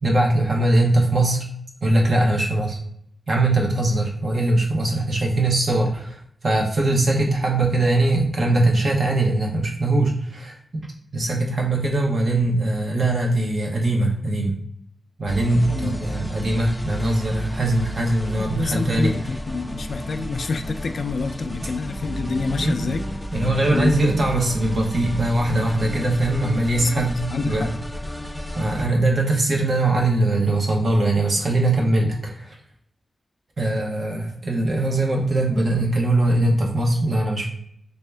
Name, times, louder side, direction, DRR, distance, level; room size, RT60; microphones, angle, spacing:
voice 1, 0.0-1.4 1.8-2.8 3.3-10.8 11.1-14.5 15.2-19.1 20.1-20.3 22.6-22.8 23.3-27.7 28.5-32.6 33.6-37.5, right 2 dB, 55° right, 0 dB, 0.9 m, -21 dB
sound 1, 15.3-28.9, equal, ahead, 0.5 m, -32 dB
voice 2, 18.4-23.0 23.7-23.9 26.8-27.7, left 4 dB, 65° left, 9 dB, 0.3 m, -27 dB
3.4 x 2.7 x 3.3 m, 0.69 s
wide cardioid pair, 155°, 0 cm